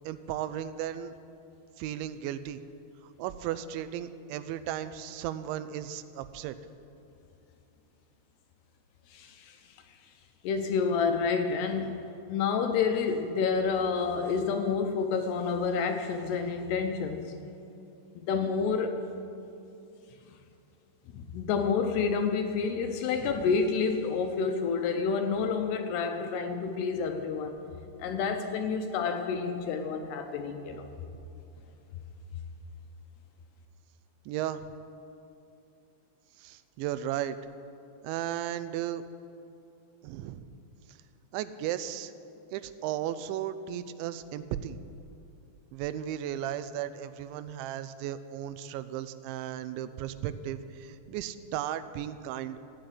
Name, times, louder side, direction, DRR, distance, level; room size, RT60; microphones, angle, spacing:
voice 1, 0.0-1.1 1.8-2.6 3.2-6.6 34.3-34.6 36.4-37.4 38.0-39.0 40.0-40.5 41.3-42.1 42.5-44.8 45.7-52.6, right 11 dB, 85° right, 13 dB, 2.9 m, -35 dB
voice 2, 9.1-9.6 10.4-17.3 18.2-19.0 21.1-27.6 28.0-30.9, left 5 dB, 80° left, 6 dB, 2.6 m, -29 dB
14.5 x 8.8 x 9.3 m, 2.7 s
omnidirectional pair, 5.3 m